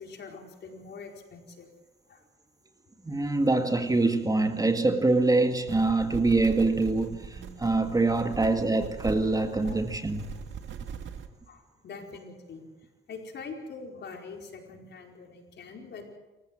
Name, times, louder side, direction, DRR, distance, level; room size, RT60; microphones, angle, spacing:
voice 1, 0.0-1.7 2.1-2.2 5.8-6.2 9.6-9.8 11.5-12.7 13.1-16.1, left 4 dB, 60° left, 4.8 m, -44 dB
voice 2, 3.0-10.3, right 2 dB, 20° right, 2.0 m, -25 dB
sound 1, 5.7-11.3, right 7 dB, 70° right, 2.1 m, -40 dB
27.5 x 15.0 x 7.7 m
cardioid pair, 90°, 20 cm